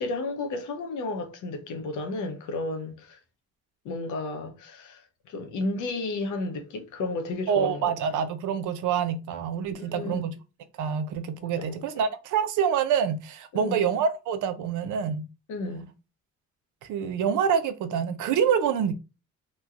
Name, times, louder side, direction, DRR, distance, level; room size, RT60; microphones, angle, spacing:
voice 1, 0.0-3.2 3.8-7.9 9.8-10.3 11.4-11.8 13.5-13.9 15.5-15.9, left 2 dB, 80° left, 0.8 m, -33 dB
voice 2, 7.5-10.3 10.8-15.2 16.8-18.9, right 7 dB, 80° right, 0.5 m, -26 dB
3.0 x 2.2 x 2.4 m
cardioid pair, 90°, 30 cm